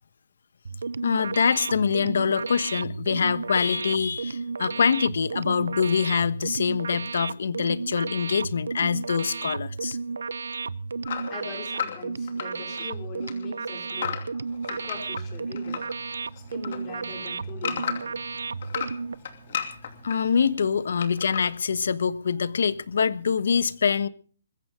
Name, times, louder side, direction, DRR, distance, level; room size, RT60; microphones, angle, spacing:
sound 1, 0.6-19.1, right 4 dB, 90° right, 0.8 m, -33 dB
voice 1, 1.0-10.0 20.0-24.1, left 6 dB, 55° left, 1.2 m, -24 dB
sound 2, 11.0-12.9 13.2-15.9 16.3-18.2 18.6-20.2 21.0-21.5, left 8 dB, 40° left, 2.6 m, -33 dB
voice 2, 11.3-14.4 14.7-15.8 16.3-18.2, left 5 dB, 15° left, 3.2 m, -42 dB
Engine, 14.5-20.6, right 4 dB, 5° right, 3.8 m, -53 dB
21.5 x 15.5 x 3.8 m
hypercardioid pair, 175°, 0 cm